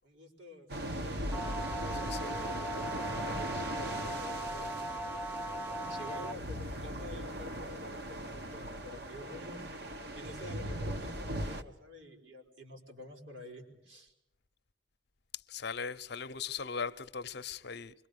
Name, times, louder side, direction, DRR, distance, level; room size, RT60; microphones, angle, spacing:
voice 1, 0.0-5.3 5.9-9.7 10.1-14.1, left 1 dB, 80° right, 5.1 m, -49 dB
sound 1, 0.7-11.6, right 1 dB, 55° right, 1.4 m, -39 dB
sound 2, 1.3-6.3, right 1 dB, 10° right, 0.8 m, -39 dB
voice 2, 2.1-2.4 15.5-17.9, left 6 dB, 60° left, 0.8 m, -39 dB
25.5 x 22.5 x 6.7 m
head